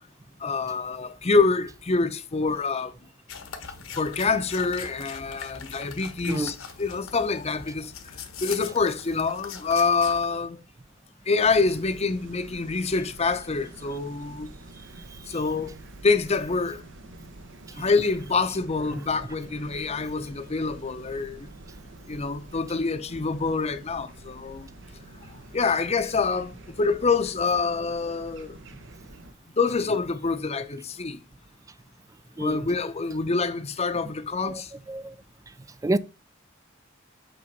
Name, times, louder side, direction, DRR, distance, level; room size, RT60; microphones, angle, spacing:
voice 1, 0.4-2.9 3.9-10.6 11.3-14.5 15.3-15.7 16.0-16.8 17.7-21.5 22.1-24.7 25.5-28.6 29.5-31.2 32.4-34.7, left 4 dB, 30° left, 0.7 m, -26 dB
sound 1, 3.3-10.2, left 6 dB, 75° left, 1.2 m, -41 dB
voice 2, 6.3-6.5 17.8-17.9 32.4-32.6 34.4-34.6 34.9-35.1 35.8-36.0, right 2 dB, 15° right, 0.3 m, -28 dB
sound 2, 11.4-29.3, right 2 dB, 65° right, 0.9 m, -47 dB
5.8 x 5.4 x 5.4 m
head